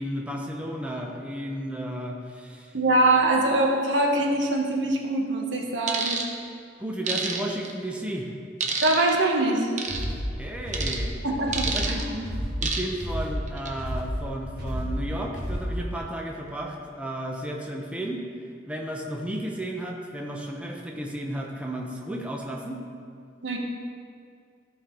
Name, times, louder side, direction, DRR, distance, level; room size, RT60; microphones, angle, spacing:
voice 1, 0.0-2.7 6.8-8.3 10.4-11.1 11.6-12.3 12.6-18.2 18.7-22.8, right 1 dB, 5° right, 0 dB, 0.7 m, -33 dB
voice 2, 2.7-6.3 8.8-9.7 11.2-12.0 23.4-23.6, right 2 dB, 75° right, 0 dB, 1.2 m, -23 dB
sound 1, 5.9-6.3 7.1-7.7 8.6-9.1 9.8-10.0 10.7-11.0 11.5-12.0 12.6-13.0 13.5-13.7, right 5 dB, 40° right, 0.8 m, -28 dB
sound 2, 9.9-15.9, equal, 60° right, 1.9 m, -31 dB
14.0 x 5.1 x 3.8 m, 2.3 s
head